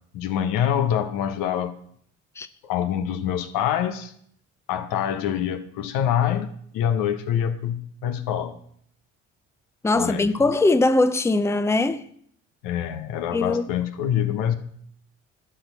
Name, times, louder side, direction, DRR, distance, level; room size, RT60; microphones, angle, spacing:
voice 1, 0.1-1.8 2.6-4.1 4.7-6.5 6.7-8.6 9.9-10.3 12.6-14.5, left 9 dB, 75° left, 1.0 m, -25 dB
voice 2, 9.8-12.0 13.3-13.7, left 2 dB, 10° left, 0.6 m, -21 dB
11.5 x 4.5 x 6.8 m
hypercardioid pair, 55°, 34 cm